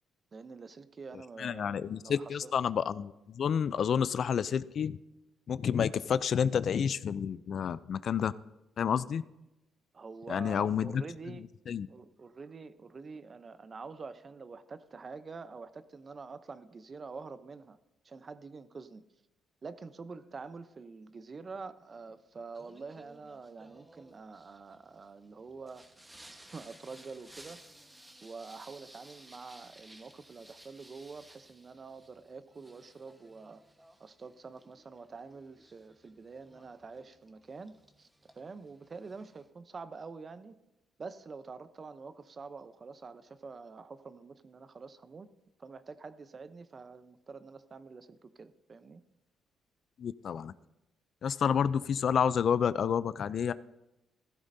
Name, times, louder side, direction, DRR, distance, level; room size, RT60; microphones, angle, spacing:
voice 1, 0.3-2.5 9.9-11.5 11.9-17.8 18.0-19.0 19.6-27.7 28.2-33.6 34.0-38.1 38.3-40.6 41.0-45.3 45.6-49.0, right 4 dB, 35° right, 13 dB, 0.7 m, -46 dB
voice 2, 1.4-5.0 5.5-8.3 8.8-9.2 10.3-11.0 11.7-11.9 50.0-50.5 51.2-53.5, left 7 dB, 60° left, 17 dB, 0.4 m, -29 dB
Singing, 22.5-39.5, right 1 dB, 10° right, 1.2 m, -58 dB
15.0 x 12.5 x 2.7 m, 0.95 s
cardioid pair, 90°, 0 cm